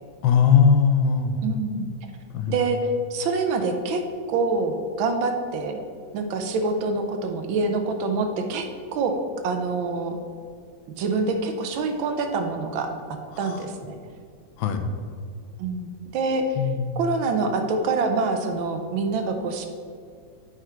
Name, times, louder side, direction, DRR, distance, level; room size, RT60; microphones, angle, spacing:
voice 1, 0.2-1.4 2.3-2.6 13.5-13.6 14.6-14.9 16.6-17.0, left 6 dB, 90° left, 6 dB, 1.5 m, -20 dB
voice 2, 1.4-1.9 2.5-4.0 4.3-5.8 6.1-8.6 8.9-9.1 9.4-10.2 11.0-12.9 13.4-14.0 15.6-16.6 17.0-19.7, right 3 dB, 80° right, 5 dB, 1.5 m, -25 dB
8.2 x 5.0 x 4.4 m, 2.2 s
omnidirectional pair, 2.1 m